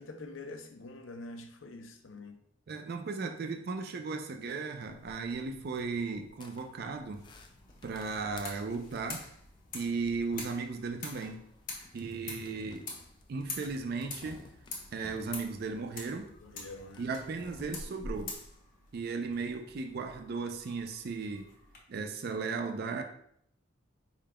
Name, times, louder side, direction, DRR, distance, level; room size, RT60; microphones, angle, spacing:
voice 1, 0.0-2.4 16.4-17.1, left 2 dB, 75° left, 0.5 m, -45 dB
voice 2, 2.7-7.3 7.8-9.3 9.7-11.4 11.9-12.9 13.3-14.5 14.9-16.3 17.0-18.3 18.9-21.5 21.9-23.0, right 4 dB, 50° right, 0.4 m, -36 dB
sound 1, 4.8-18.6, left 1 dB, 25° left, 0.3 m, -53 dB
sound 2, 7.1-21.8, left 4 dB, 45° left, 0.9 m, -47 dB
4.8 x 3.6 x 2.2 m
head